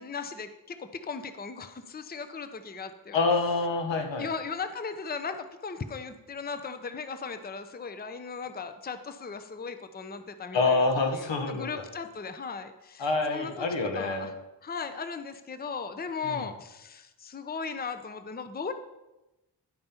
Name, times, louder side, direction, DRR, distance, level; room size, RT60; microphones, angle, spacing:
voice 1, 0.0-3.2 4.2-10.9 11.1-13.5 13.9-14.3 14.6-18.7, left 5 dB, 20° left, 9 dB, 0.6 m, -37 dB
voice 2, 3.1-4.3 10.5-11.8 13.0-14.3 16.2-16.4, left 3 dB, 75° left, 4 dB, 1.3 m, -27 dB
10.5 x 5.2 x 4.4 m, 1.0 s
cardioid pair, 45°, 44 cm